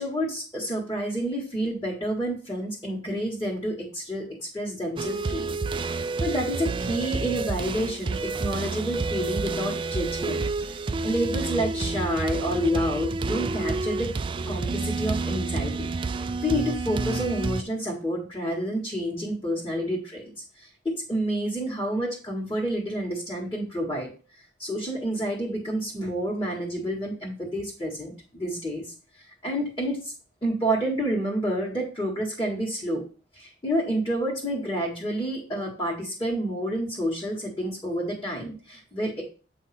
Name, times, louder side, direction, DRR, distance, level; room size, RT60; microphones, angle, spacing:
voice 1, 0.0-10.8 11.0-14.1 14.4-15.9 16.1-20.3 20.6-24.1 24.6-30.1 30.4-33.0 33.3-39.2, equal, 20° left, -5 dB, 1.5 m, -29 dB
sound 1, 5.0-17.6, right 3 dB, 25° right, 0.3 m, -29 dB
8.2 x 2.8 x 5.8 m, 0.37 s
head